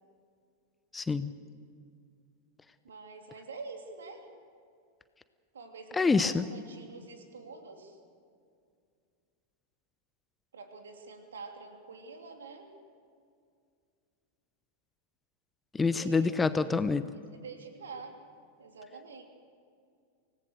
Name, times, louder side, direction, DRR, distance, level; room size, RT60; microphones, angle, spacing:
voice 1, 0.9-1.3 5.9-6.4 15.7-17.1, left 4 dB, 15° left, 13 dB, 0.8 m, -26 dB
voice 2, 2.8-4.3 5.5-8.0 10.5-12.7 15.8-16.4 17.3-18.2 18.6-19.2, right 4 dB, 65° right, 4 dB, 3.0 m, -46 dB
25.5 x 18.5 x 6.7 m, 2.3 s
figure-of-eight pair, 90°, 0 cm